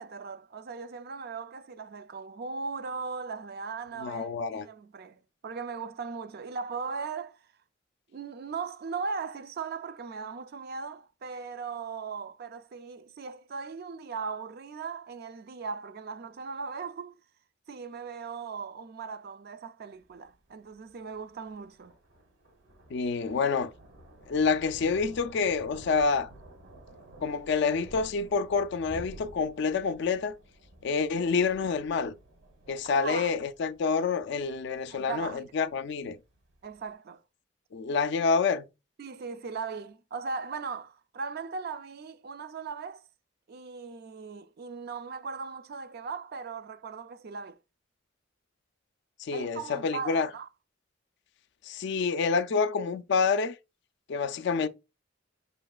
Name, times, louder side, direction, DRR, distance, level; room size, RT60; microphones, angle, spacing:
voice 1, 0.0-7.4 8.1-17.1 17.7-21.9 32.8-33.3 34.9-35.5 36.6-37.2 39.0-43.0 43.5-47.6 49.3-50.5, right 5 dB, 50° right, 0.4 m, -38 dB
voice 2, 4.0-4.7 22.9-23.7 24.3-26.3 27.2-30.3 30.8-32.1 32.7-36.2 37.7-38.7 49.2-50.3 51.6-53.5 54.1-54.7, left 5 dB, 60° left, 0.4 m, -28 dB
Thunder, 19.9-36.9, right 1 dB, 75° right, 1.0 m, -52 dB
5.6 x 3.0 x 2.3 m
head